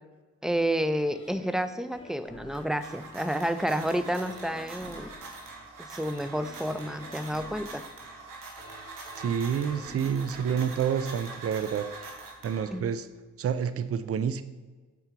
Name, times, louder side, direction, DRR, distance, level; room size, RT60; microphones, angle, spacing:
voice 1, 0.4-5.1 5.9-7.8 12.7-12.9, equal, ahead, 11 dB, 0.5 m, -30 dB
sound 1, 1.0-11.9 12.4-12.5, left 1 dB, 15° left, 2.3 m, -50 dB
sound 2, 2.3-13.0, right 3 dB, 85° right, 1.5 m, -44 dB
voice 2, 9.2-11.9 12.4-13.1 13.4-14.4, right 7 dB, 45° right, 13 dB, 0.5 m, -28 dB
6.9 x 4.5 x 5.1 m, 1.3 s
supercardioid pair, 50°, 31 cm